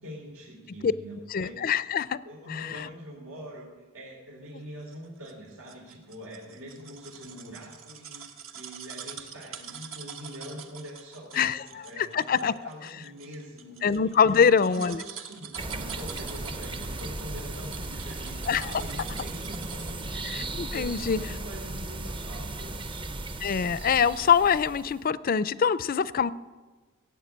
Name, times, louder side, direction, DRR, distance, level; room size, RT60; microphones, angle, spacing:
voice 1, 0.0-1.7 2.2-20.0 20.7-22.8, equal, 90° right, -4 dB, 3.2 m, -44 dB
voice 2, 1.3-2.2 2.5-2.9 11.3-12.5 13.8-15.0 18.5-18.7 20.2-21.2 23.4-26.3, left 6 dB, 45° left, 17 dB, 0.4 m, -24 dB
sound 1, 4.9-20.1 20.5-20.6, right 8 dB, 70° right, 1.2 m, -45 dB
sound 2, 15.6-25.0, right 2 dB, 25° right, 0.6 m, -36 dB
16.5 x 8.0 x 8.7 m, 1.3 s
head